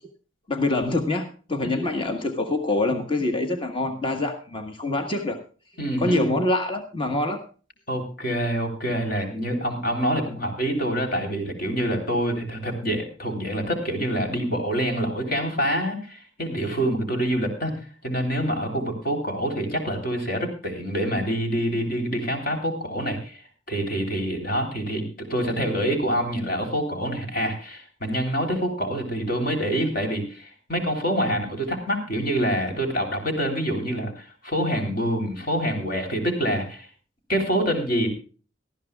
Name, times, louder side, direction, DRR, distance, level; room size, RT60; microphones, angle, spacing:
voice 1, 0.5-5.4 6.0-7.4, left 2 dB, 25° left, 4 dB, 1.4 m, -25 dB
voice 2, 5.8-6.3 7.9-17.7 18.0-36.9 37.3-38.1, equal, 50° left, 3 dB, 3.4 m, -26 dB
19.0 x 14.0 x 2.3 m, 0.38 s
head